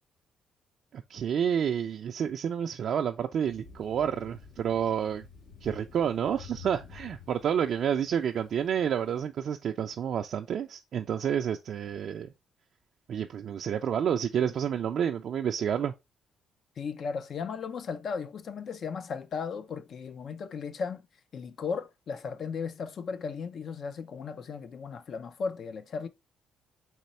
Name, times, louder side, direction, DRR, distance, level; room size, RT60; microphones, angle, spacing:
voice 1, 0.9-5.3 5.6-12.3 13.1-15.9, right 8 dB, 65° right, 0.3 m, -29 dB
Thunder, 3.4-9.1, left 5 dB, 85° left, 1.9 m, -50 dB
voice 2, 16.8-21.1 21.3-26.1, left 5 dB, 60° left, 0.5 m, -36 dB
4.2 x 3.0 x 4.1 m
cardioid pair, 90°, 0 cm